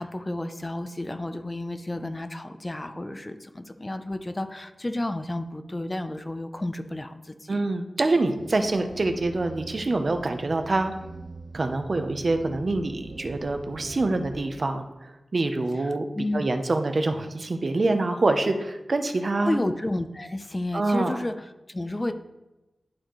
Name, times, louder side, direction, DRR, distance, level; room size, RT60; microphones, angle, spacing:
voice 1, 0.0-7.6 15.7-16.5 19.4-22.1, left 1 dB, 25° left, 8 dB, 0.5 m, -31 dB
voice 2, 7.5-10.9 11.5-14.9 15.3-16.1 16.3-19.6 20.7-21.1, right 2 dB, 55° right, 7 dB, 0.7 m, -25 dB
sound 1, 8.4-14.4, right 3 dB, 75° right, 1.0 m, -42 dB
11.5 x 4.3 x 3.1 m, 1.0 s
wide cardioid pair, 70°, 0 cm